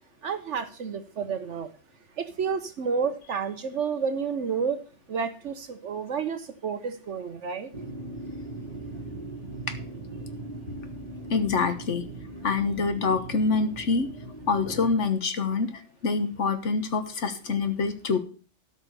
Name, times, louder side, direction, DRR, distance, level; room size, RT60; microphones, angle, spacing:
voice 1, 0.2-1.7 2.2-4.8 5.1-7.7, right 6 dB, 70° right, 9 dB, 1.2 m, -30 dB
sound 1, 7.7-15.0, right 2 dB, 35° right, 1.2 m, -39 dB
voice 2, 11.3-12.0 12.4-14.1 14.5-15.7 16.0-18.2, left 4 dB, 70° left, 9 dB, 1.5 m, -25 dB
13.0 x 5.3 x 6.8 m, 0.39 s
omnidirectional pair, 1.3 m